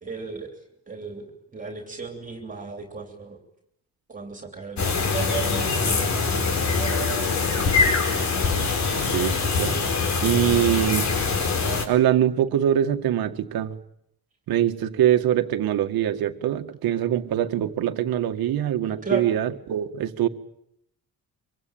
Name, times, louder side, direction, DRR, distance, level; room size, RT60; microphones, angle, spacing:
voice 1, 0.0-3.4 4.1-7.7 19.0-19.3, right 3 dB, 20° right, 4 dB, 3.1 m, -36 dB
sound 1, 4.8-11.9, left 4 dB, 50° left, 4.5 m, -23 dB
voice 2, 8.9-9.8 10.2-11.1 11.9-13.8 14.5-20.3, right 11 dB, 70° right, 7 dB, 2.0 m, -23 dB
25.0 x 24.5 x 8.9 m, 0.77 s
cardioid pair, 170°, 37 cm